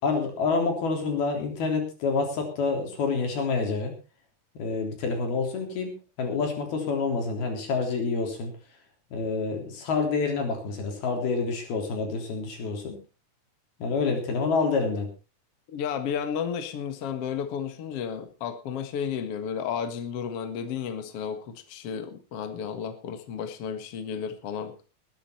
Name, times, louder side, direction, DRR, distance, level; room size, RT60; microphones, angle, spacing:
voice 1, 0.0-3.9 4.6-8.5 9.1-13.0 13.8-15.1, left 4 dB, 80° left, 3 dB, 5.6 m, -27 dB
voice 2, 15.7-24.8, left 7 dB, 50° left, 8 dB, 2.1 m, -32 dB
20.0 x 10.0 x 4.4 m, 0.32 s
omnidirectional pair, 4.3 m